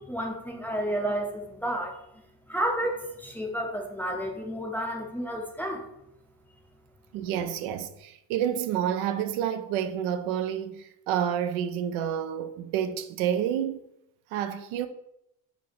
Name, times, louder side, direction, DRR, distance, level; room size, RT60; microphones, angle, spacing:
voice 1, 0.0-2.0 2.5-5.9, right 1 dB, 5° left, 0.4 m, -31 dB
voice 2, 7.1-13.9 14.3-14.9, right 9 dB, 85° right, 0.6 m, -29 dB
3.7 x 3.6 x 3.8 m
cardioid pair, 125°, 47 cm